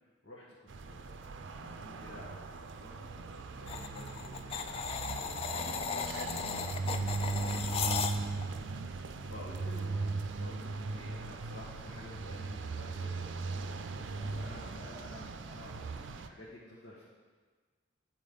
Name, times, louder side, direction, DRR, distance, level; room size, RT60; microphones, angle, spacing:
voice 1, 0.2-8.5 8.9-13.6 13.9-17.0, left 1 dB, 85° left, -7 dB, 1.3 m, -51 dB
sound 1, 0.7-16.3, right 3 dB, 80° right, 0.5 m, -38 dB
sound 2, 3.7-8.5, left 6 dB, 30° left, 0.3 m, -36 dB
9.5 x 4.5 x 5.2 m, 1.5 s
head